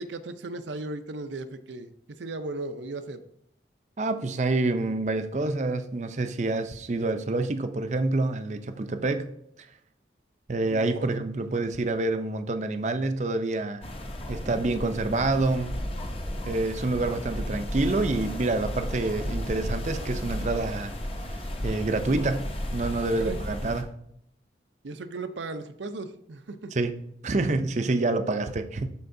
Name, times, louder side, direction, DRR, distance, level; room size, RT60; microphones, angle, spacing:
voice 1, 0.0-1.9 2.2-3.2 10.7-11.1 23.2-23.4 24.8-26.8, right 3 dB, 85° right, 9 dB, 0.6 m, -36 dB
voice 2, 4.0-9.3 10.5-13.8 14.3-15.8 16.5-20.9 21.6-23.9 26.7-26.9 27.2-28.9, right 2 dB, 40° right, 9 dB, 0.5 m, -27 dB
sound 1, 13.8-23.8, equal, 30° left, 0.7 m, -33 dB
12.5 x 4.5 x 2.6 m, 0.73 s
head